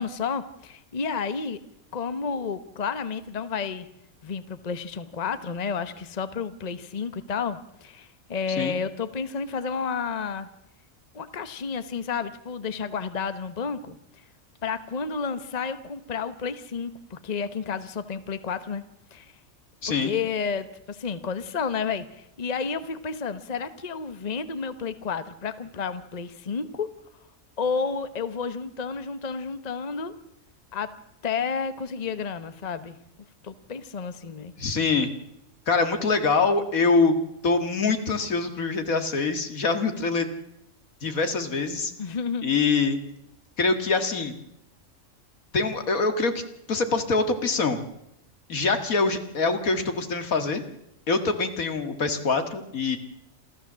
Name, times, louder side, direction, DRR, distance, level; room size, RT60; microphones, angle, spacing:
voice 1, 0.0-1.6 1.9-3.9 4.2-10.5 11.1-14.0 14.6-18.8 19.1-19.3 19.9-26.9 27.6-30.1 30.7-30.9 31.2-33.0 33.4-34.5 42.0-42.5, left 5 dB, 30° left, 12 dB, 1.1 m, -31 dB
voice 2, 19.8-20.1 34.6-35.1 35.7-37.2 37.4-40.3 41.0-41.9 42.4-43.0 43.6-44.3 45.5-46.4 46.7-47.8 48.5-50.6 51.1-53.0, left 4 dB, 80° left, 8 dB, 2.3 m, -24 dB
27.5 x 14.0 x 7.4 m, 0.80 s
omnidirectional pair, 1.4 m